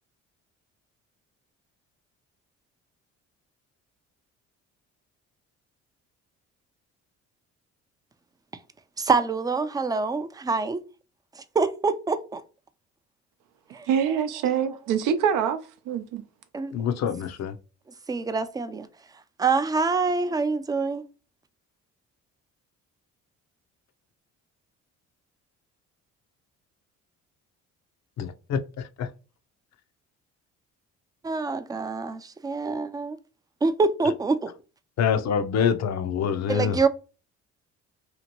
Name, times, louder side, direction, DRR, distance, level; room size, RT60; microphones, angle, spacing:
voice 1, 9.0-10.8 11.4-12.4 13.7-13.9 16.5-16.7 18.1-18.9 19.4-21.1 31.2-33.2 33.6-34.5 36.5-36.9, right 4 dB, 15° right, 0.3 m, -25 dB
voice 2, 13.7-15.6 15.9-16.2, right 8 dB, 80° right, 0.6 m, -25 dB
voice 3, 16.7-17.6 28.2-29.1 35.0-36.8, left 7 dB, 55° left, 0.5 m, -26 dB
2.9 x 2.5 x 2.9 m
supercardioid pair, 75°, 31 cm